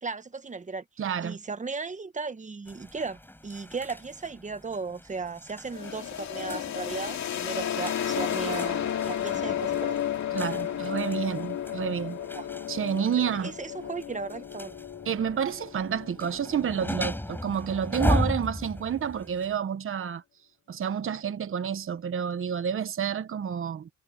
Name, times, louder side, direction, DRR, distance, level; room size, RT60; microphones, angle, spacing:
voice 1, 0.0-0.8 1.2-10.0 12.2-12.4 13.2-14.7, right 4 dB, 25° right, 1.5 m, -36 dB
voice 2, 1.0-1.4 10.3-12.2 12.7-13.5 15.0-20.2 20.7-23.9, right 8 dB, 45° right, 1.2 m, -29 dB
sound 1, 2.7-19.6, left 1 dB, 5° left, 7.7 m, -37 dB
sound 2, 5.7-17.4, left 10 dB, 65° left, 2.4 m, -33 dB
cardioid pair, 90°, 30 cm